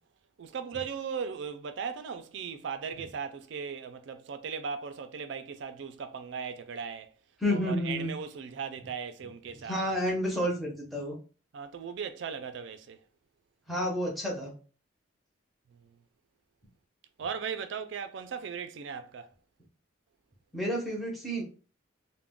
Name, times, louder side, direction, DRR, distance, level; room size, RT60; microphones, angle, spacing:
voice 1, 0.4-7.1 7.5-9.8 11.5-13.0 15.7-15.9 17.2-19.3, right 6 dB, 60° right, 0.3 m, -38 dB
voice 2, 7.4-8.1 9.7-11.2 13.7-14.5 20.5-21.4, equal, ahead, 0.7 m, -30 dB
2.3 x 2.1 x 3.5 m
head